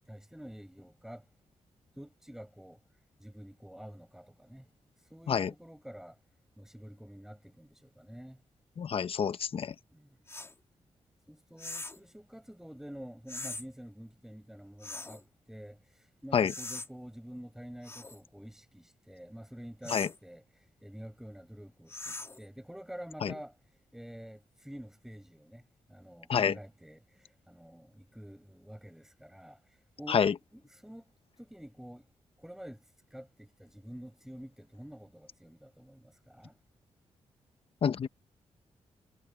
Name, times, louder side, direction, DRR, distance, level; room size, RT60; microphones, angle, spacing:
voice 1, 0.1-1.2 1.9-2.8 3.2-4.7 5.1-6.2 6.6-8.4 9.9-10.2 11.3-23.6 23.9-25.6 25.9-31.0 31.4-32.1 32.4-36.6, equal, 5° right, 5.0 m, -48 dB
voice 2, 8.8-9.7 16.3-16.5 19.9-20.1 23.2-23.3 26.3-26.6 30.1-30.3 37.8-38.1, left 7 dB, 55° left, 0.8 m, -27 dB
sound 1, 10.3-10.5 11.6-12.0 13.3-13.6 14.8-15.2 16.4-16.9 17.8-18.2 19.8-20.2 21.9-22.4, left 2 dB, 20° left, 2.2 m, -41 dB
cardioid pair, 105°, 12 cm